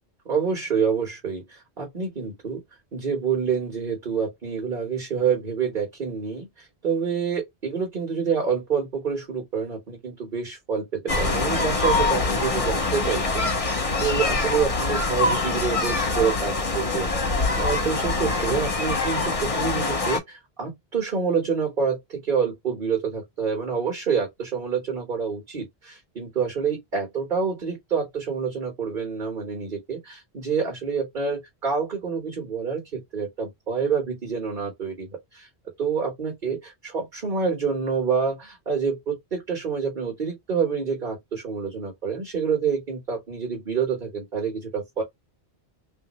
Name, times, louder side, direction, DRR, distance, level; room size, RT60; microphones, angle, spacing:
voice 1, 0.2-2.6 2.9-35.5 35.8-45.0, right 6 dB, 50° right, 1.5 m, -27 dB
sound 1, 11.1-20.2, left 3 dB, 35° left, 1.0 m, -24 dB
3.4 x 2.7 x 3.1 m
omnidirectional pair, 1.1 m